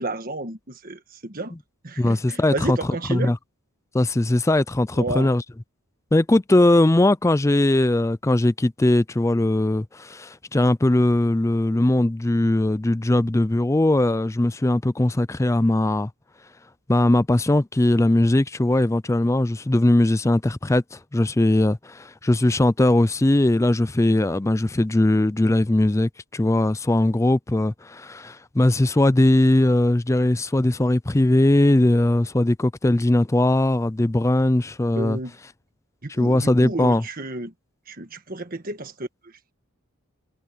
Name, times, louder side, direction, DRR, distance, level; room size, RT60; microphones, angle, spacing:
voice 1, 0.0-1.5 1.8-3.3 4.9-5.3 35.0-35.3 36.0-37.5 37.9-39.3, right 2 dB, 40° right, 1.5 m, -31 dB
voice 2, 2.0-2.8 3.1-3.4 3.9-5.4 6.1-16.1 16.9-35.2 36.2-37.0, left 1 dB, 15° left, 0.4 m, -20 dB
head